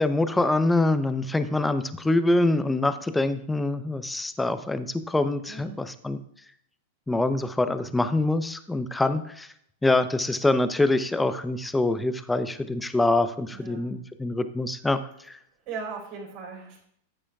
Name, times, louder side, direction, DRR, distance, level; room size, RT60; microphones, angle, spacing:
voice 1, 0.0-6.2 7.1-9.5 9.8-15.0 15.3-15.4, left 2 dB, 10° left, 11 dB, 0.7 m, -25 dB
voice 2, 5.5-5.8 13.5-13.9 15.6-16.8, right 5 dB, 45° right, -2 dB, 4.5 m, -38 dB
13.5 x 8.7 x 2.4 m, 0.68 s
figure-of-eight pair, 95°, 0 cm